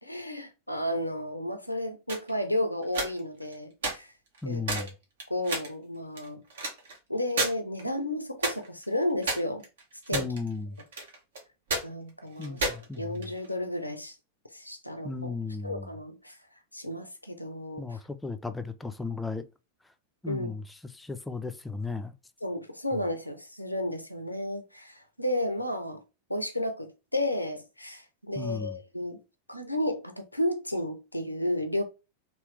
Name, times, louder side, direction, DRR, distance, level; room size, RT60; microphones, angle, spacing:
voice 1, 0.0-4.1 4.4-4.9 5.3-6.4 7.1-9.6 10.1-10.3 11.8-12.6 13.0-14.2 14.5-15.3 15.6-16.3 16.7-18.0 20.3-20.5 22.4-26.0 26.3-29.2 29.5-31.8, left 1 dB, 85° left, 0.6 m, -32 dB
sound 1, 2.1-2.3 2.8-3.5 3.8-3.9 4.3-4.4 4.7-4.9 5.2-5.7 6.2-7.0 7.3-7.5 7.8-7.9 8.4-8.8 9.2-10.5 10.8-11.4 11.7-11.8 12.4-13.5, right 2 dB, 65° right, 1.0 m, -31 dB
voice 2, 4.4-4.9 10.1-10.8 12.4-13.3 15.0-15.9 17.8-19.4 20.2-22.1 22.9-23.0 28.4-28.8, left 4 dB, 5° left, 0.4 m, -35 dB
3.2 x 2.9 x 3.1 m
figure-of-eight pair, 90°, 0 cm